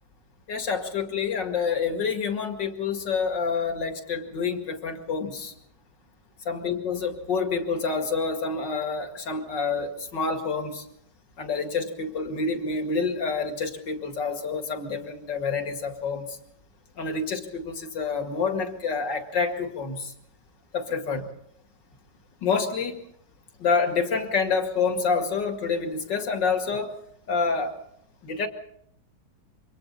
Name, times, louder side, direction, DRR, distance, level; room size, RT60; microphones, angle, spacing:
voice 1, 0.5-5.5 6.5-10.8 11.4-16.4 17.0-20.1 20.7-21.3 22.4-23.0 23.6-26.9 27.3-27.7 28.2-28.5, left 5 dB, 70° left, 5 dB, 2.8 m, -27 dB
27.5 x 24.5 x 4.2 m, 0.70 s
omnidirectional pair, 2.0 m